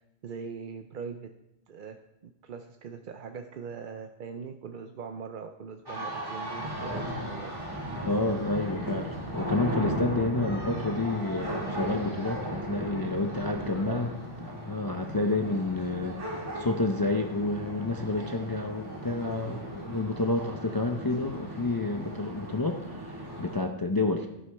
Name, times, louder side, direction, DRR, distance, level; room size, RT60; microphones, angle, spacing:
voice 1, 0.2-1.3 1.7-2.0 2.2-7.5 13.8-14.0, right 6 dB, 55° right, 6 dB, 0.6 m, -41 dB
sound 1, 5.9-23.6, right 1 dB, 20° right, 1.9 m, -36 dB
voice 2, 8.0-14.1 14.5-24.3, left 2 dB, 25° left, 4 dB, 0.4 m, -29 dB
11.0 x 11.0 x 3.4 m, 0.88 s
omnidirectional pair, 1.3 m